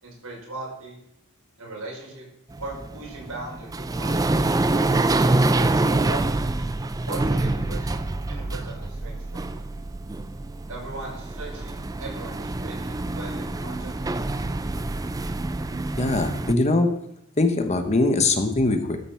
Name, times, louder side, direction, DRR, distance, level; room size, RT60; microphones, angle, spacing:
voice 1, 0.0-1.0 1.6-2.2 2.6-4.3 5.3-6.2 7.0-8.0 8.2-9.5 10.7-14.5, right 2 dB, 80° right, -2 dB, 5.4 m, -38 dB
sound 1, 2.5-16.5, right 2 dB, 15° right, 0.4 m, -26 dB
voice 2, 16.0-16.9 17.4-19.0, left 2 dB, 30° left, 6 dB, 1.1 m, -21 dB
13.0 x 6.9 x 5.7 m, 0.79 s
head